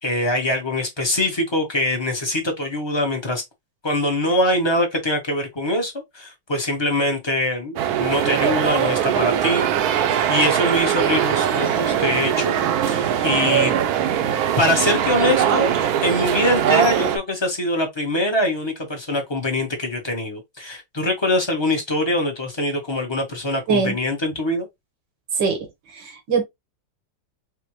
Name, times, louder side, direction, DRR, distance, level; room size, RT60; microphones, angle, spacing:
voice 1, 0.0-3.4 3.8-12.5 12.9-13.7 14.6-15.7 16.0-24.7, left 1 dB, 25° left, 0.6 m, -23 dB
sound 1, 7.8-17.2, right 9 dB, 70° right, 1.0 m, -21 dB
voice 2, 25.9-26.4, right 5 dB, 90° right, 1.9 m, -22 dB
4.9 x 2.1 x 2.9 m
omnidirectional pair, 1.9 m